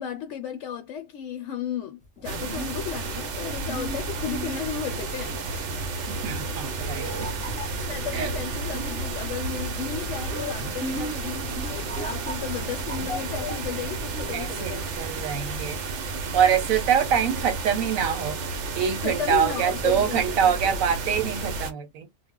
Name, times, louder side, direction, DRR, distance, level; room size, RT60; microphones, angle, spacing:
voice 1, 0.0-5.7 7.8-14.9 19.0-20.8, left 8 dB, 70° left, 0.9 m, -34 dB
sound 1, 2.0-14.5, equal, 5° left, 0.8 m, -38 dB
sound 2, 2.2-21.7, right 3 dB, 65° right, 0.9 m, -32 dB
voice 2, 6.2-7.1 8.1-8.3 14.3-15.8 16.3-22.1, right 8 dB, 85° right, 1.2 m, -25 dB
2.3 x 2.0 x 3.6 m
omnidirectional pair, 1.4 m